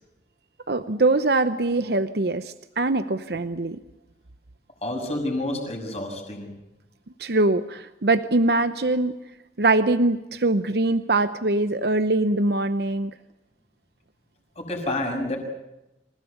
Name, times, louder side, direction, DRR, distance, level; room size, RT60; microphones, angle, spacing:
voice 1, 0.7-3.8 7.2-9.2 9.6-13.1, right 2 dB, 65° right, 10 dB, 0.9 m, -22 dB
voice 2, 4.8-6.5 14.6-15.4, left 1 dB, 35° left, 2 dB, 6.6 m, -29 dB
27.0 x 16.5 x 8.3 m, 0.94 s
head